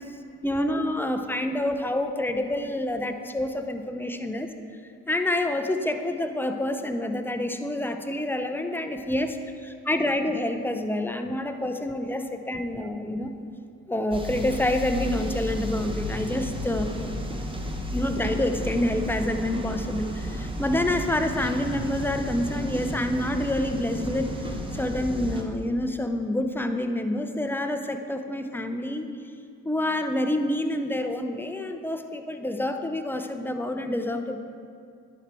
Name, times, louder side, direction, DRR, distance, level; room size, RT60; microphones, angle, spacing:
voice 1, 0.4-4.5 5.1-13.3 13.9-16.9 17.9-24.3 24.7-29.1 29.6-34.4, left 1 dB, 5° left, 6 dB, 0.6 m, -27 dB
sound 1, 14.1-25.4, equal, 15° right, 1.0 m, -33 dB
10.5 x 4.5 x 4.6 m, 2.4 s
hypercardioid pair, 60°, 39 cm